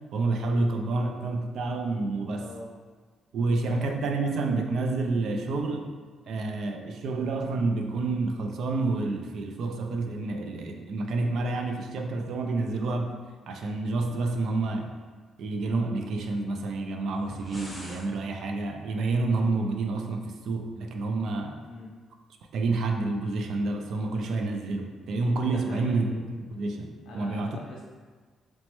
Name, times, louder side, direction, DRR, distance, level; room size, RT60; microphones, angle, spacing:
voice 1, 0.1-2.4 3.3-5.9 6.3-13.1 13.5-14.9 15.4-21.6 22.5-26.2 26.5-27.6, right 3 dB, 70° right, 4 dB, 0.3 m, -29 dB
voice 2, 2.4-2.7 3.6-3.8 21.6-22.0 25.5-26.1 27.0-27.8, left 2 dB, 85° left, -3 dB, 0.7 m, -43 dB
sound 1, 17.1-18.1, equal, ahead, 0.7 m, -43 dB
3.0 x 2.1 x 3.0 m, 1.5 s
cardioid pair, 90°, 0 cm